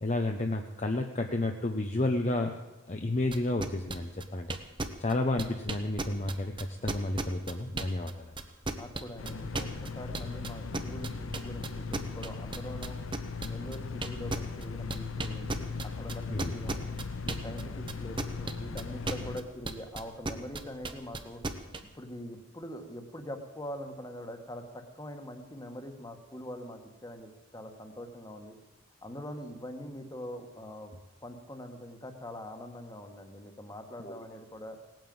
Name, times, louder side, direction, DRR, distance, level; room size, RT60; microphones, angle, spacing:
voice 1, 0.0-2.5 2.9-4.5 5.0-8.3 16.3-16.5 34.0-34.2, left 2 dB, 35° left, 4 dB, 0.8 m, -31 dB
sound 1, 3.3-8.1 8.4-17.6 17.9-21.8, right 2 dB, 25° right, 1.0 m, -34 dB
voice 2, 8.7-13.0 13.4-16.8 17.2-21.4 21.8-28.5 29.0-30.9 31.2-34.8, equal, 20° left, 6 dB, 1.6 m, -43 dB
sound 2, 9.2-19.4, left 4 dB, 85° left, 0.9 m, -38 dB
18.0 x 9.2 x 7.8 m, 1.2 s
head